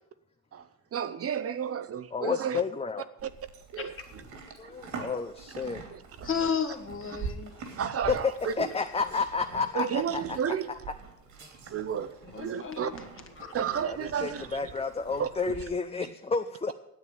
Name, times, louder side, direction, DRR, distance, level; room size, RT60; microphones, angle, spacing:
voice 1, 0.5-2.6 3.2-3.3 3.7-3.9 5.0-5.1 5.9-6.3 7.8-8.7 9.7-10.7 11.7-12.9 13.5-14.7 15.2-15.5, right 8 dB, 50° right, 0.8 m, -32 dB
voice 2, 2.1-3.0 4.6-5.8 8.1-8.2 8.6-10.4 13.8-16.7, left 4 dB, 20° left, 0.7 m, -31 dB
Livestock farm animals working animals, 3.2-15.6, right 5 dB, 75° right, 2.9 m, -45 dB
voice 3, 6.2-7.6 12.2-13.1 13.4-13.5, left 6 dB, 45° left, 2.0 m, -33 dB
9.7 x 8.1 x 8.9 m
cardioid pair, 90°, 30 cm